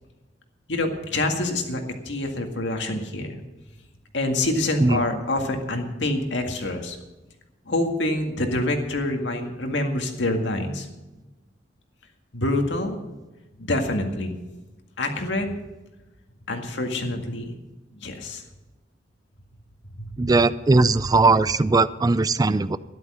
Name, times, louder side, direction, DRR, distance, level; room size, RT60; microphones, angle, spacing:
voice 1, 0.7-3.4 4.1-7.0 7.7-10.9 12.3-13.0 13.6-14.3 15.0-15.5 16.5-17.5 17.9-18.4 20.0-20.1, left 1 dB, 75° left, 4 dB, 2.0 m, -26 dB
voice 2, 20.2-22.8, right 3 dB, 20° right, 16 dB, 0.4 m, -19 dB
13.0 x 11.0 x 6.3 m, 1.1 s
head